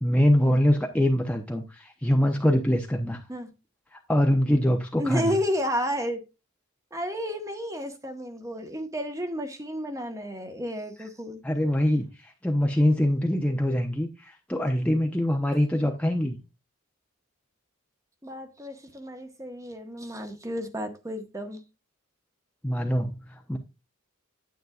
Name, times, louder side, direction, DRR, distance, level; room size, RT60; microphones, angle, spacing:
voice 1, 0.0-3.2 3.9-5.3 11.4-16.4 22.6-23.6, equal, 5° left, 0.7 m, -24 dB
voice 2, 5.0-6.2 6.9-11.4 18.2-21.6, equal, 15° right, 1.1 m, -32 dB
9.4 x 9.1 x 2.4 m
head